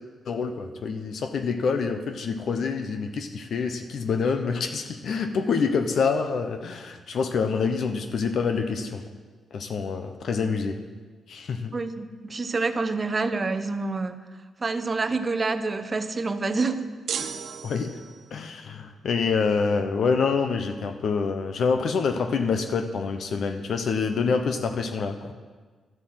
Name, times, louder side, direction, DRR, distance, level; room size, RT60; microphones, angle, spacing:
voice 1, 0.2-9.0 9.5-10.8 11.3-11.7 17.6-17.9 18.3-25.3, left 5 dB, 60° left, 7 dB, 0.8 m, -26 dB
voice 2, 11.7-14.2 14.6-16.9, right 3 dB, 25° right, 7 dB, 0.8 m, -27 dB
sound 1, 17.1-18.4, right 7 dB, 65° right, 0.8 m, -34 dB
12.5 x 7.9 x 7.8 m, 1.4 s
cardioid pair, 140°, 0 cm